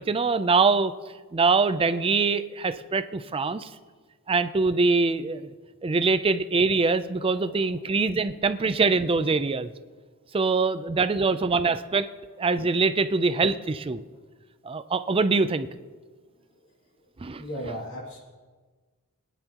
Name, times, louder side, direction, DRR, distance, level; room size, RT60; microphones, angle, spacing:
voice 1, 0.1-0.9 1.3-3.7 4.3-5.5 5.8-9.7 10.3-12.1 12.4-14.0 14.6-15.7 17.2-17.4, right 4 dB, 25° right, 11 dB, 0.4 m, -23 dB
voice 2, 7.3-7.8 13.0-13.6 16.6-16.7 17.4-18.2, equal, 65° left, -3 dB, 2.6 m, -39 dB
23.0 x 10.0 x 2.9 m, 1.4 s
head